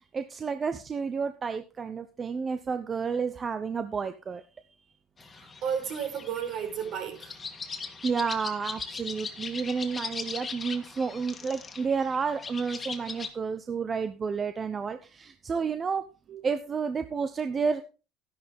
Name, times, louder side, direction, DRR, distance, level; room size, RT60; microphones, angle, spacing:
voice 1, 0.0-4.4 8.0-16.0 16.4-17.8, right 5 dB, 30° right, 0.9 m, -31 dB
sound 1, 5.2-13.3, left 4 dB, 25° left, 1.9 m, -40 dB
voice 2, 5.3-7.3 16.3-16.4, right 8 dB, 55° right, 4.5 m, -33 dB
12.5 x 10.5 x 3.6 m
supercardioid pair, 110°, 0 cm